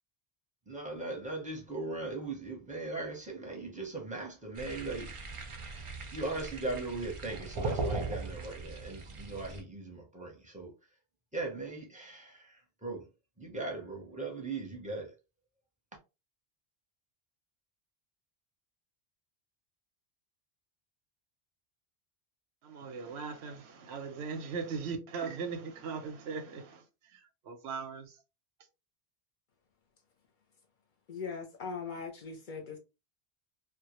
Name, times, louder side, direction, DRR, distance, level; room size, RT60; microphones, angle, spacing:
voice 1, 0.7-5.3 6.1-10.7 11.3-13.1 13.4-15.1, right 2 dB, 10° right, 0.6 m, -39 dB
sound 1, 4.5-9.6, right 3 dB, 50° right, 0.4 m, -39 dB
voice 2, 22.6-28.2, right 5 dB, 85° right, 0.8 m, -39 dB
voice 3, 31.1-32.8, left 5 dB, 60° left, 0.6 m, -40 dB
2.1 x 2.1 x 2.9 m
omnidirectional pair, 1.1 m